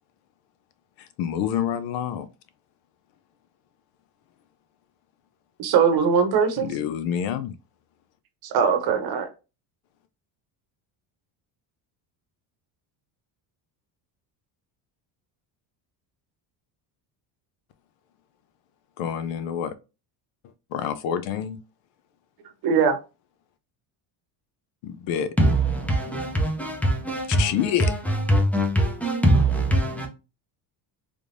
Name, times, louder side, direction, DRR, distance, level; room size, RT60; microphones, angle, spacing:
voice 1, 1.0-2.3 6.6-7.6 19.0-19.7 20.7-21.6 24.8-25.3 27.3-27.9, left 9 dB, 80° left, 0.6 m, -27 dB
voice 2, 5.6-6.7 8.4-9.3 22.6-23.0, right 6 dB, 55° right, 0.8 m, -21 dB
voice 3, 25.4-30.1, right 1 dB, 5° left, 0.4 m, -22 dB
3.4 x 3.3 x 2.5 m
cardioid pair, 165°, 45 cm